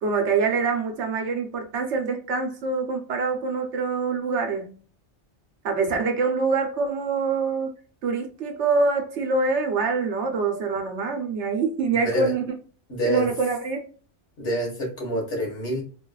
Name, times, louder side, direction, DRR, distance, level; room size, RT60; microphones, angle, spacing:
voice 1, 0.0-4.8 5.6-7.7 8.0-12.4 13.0-13.8, right 4 dB, 70° right, 1.1 m, -25 dB
voice 2, 11.9-12.3 12.9-13.3 14.4-15.8, equal, 75° left, 1.8 m, -27 dB
4.0 x 2.6 x 2.3 m
omnidirectional pair, 1.2 m